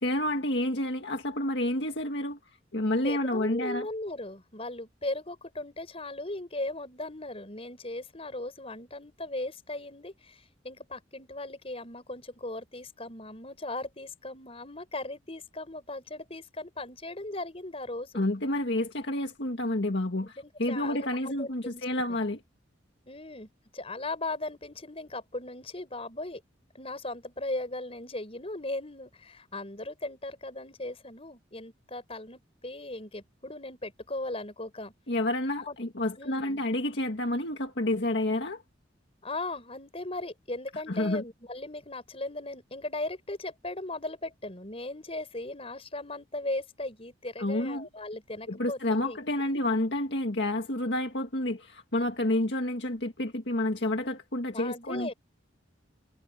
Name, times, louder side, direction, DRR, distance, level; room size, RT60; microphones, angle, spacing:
voice 1, 0.0-2.4 2.7-3.9 18.1-22.4 35.1-38.6 40.9-41.2 47.4-47.9 48.5-55.1, left 1 dB, 60° left, 2.0 m, -29 dB
voice 2, 3.0-18.2 20.2-21.9 23.1-26.4 26.7-34.9 35.6-35.8 36.2-36.6 39.2-49.2 49.5-49.6 54.5-55.1, left 2 dB, 30° left, 5.4 m, -38 dB
head